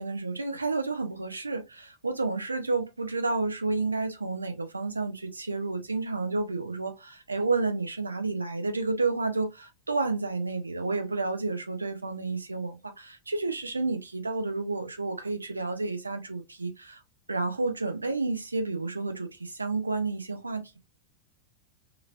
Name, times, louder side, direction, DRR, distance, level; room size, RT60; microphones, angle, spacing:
voice 1, 0.0-17.0 17.3-20.8, right 3 dB, 80° right, 0.5 m, -30 dB
2.9 x 2.6 x 2.4 m
figure-of-eight pair, 90°, 0 cm